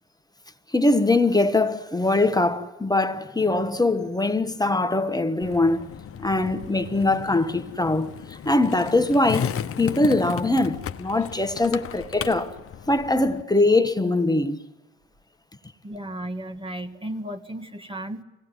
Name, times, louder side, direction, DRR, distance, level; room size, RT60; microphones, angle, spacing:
voice 1, 0.7-5.9 6.2-12.5 12.9-14.6, left 2 dB, 10° left, 1.5 m, -22 dB
Skateboard, 5.4-13.4, left 8 dB, 45° left, 1.0 m, -35 dB
voice 2, 15.8-18.2, right 1 dB, 15° right, 1.7 m, -34 dB
24.0 x 18.0 x 9.9 m
hypercardioid pair, 50°, 32 cm